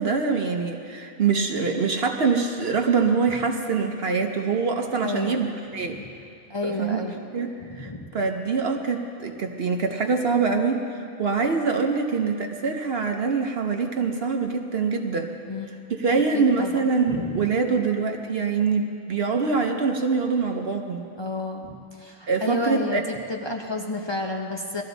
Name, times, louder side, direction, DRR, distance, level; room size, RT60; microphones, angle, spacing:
voice 1, 0.0-6.0 6.6-7.0 7.3-7.5 7.8-15.3 15.9-21.0 22.3-23.0, right 5 dB, 50° right, 3 dB, 0.9 m, -24 dB
voice 2, 5.0-5.4 5.9-6.1 6.5-7.2 7.6-8.1 15.5-15.8 16.3-16.8 17.1-17.4 21.2-24.8, left 2 dB, 25° left, 1 dB, 0.7 m, -31 dB
19.0 x 13.5 x 4.0 m, 2.5 s
omnidirectional pair, 1.4 m